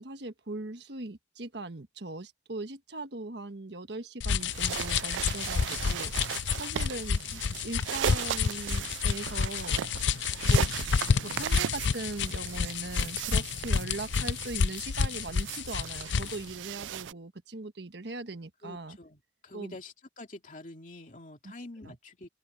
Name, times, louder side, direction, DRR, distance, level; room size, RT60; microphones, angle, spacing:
voice 1, 0.0-6.1 6.6-7.2 7.6-9.8 10.4-10.7 11.2-19.0 19.5-19.8 21.4-21.5 21.8-21.9, right 2 dB, 70° right, 1.4 m, -39 dB
sound 1, 4.2-16.4, left 5 dB, 80° left, 0.5 m, -29 dB
sound 2, 4.4-17.1, right 10 dB, 90° right, 0.3 m, -37 dB
voice 2, 18.6-22.3, left 2 dB, 45° left, 2.5 m, -47 dB
open air
head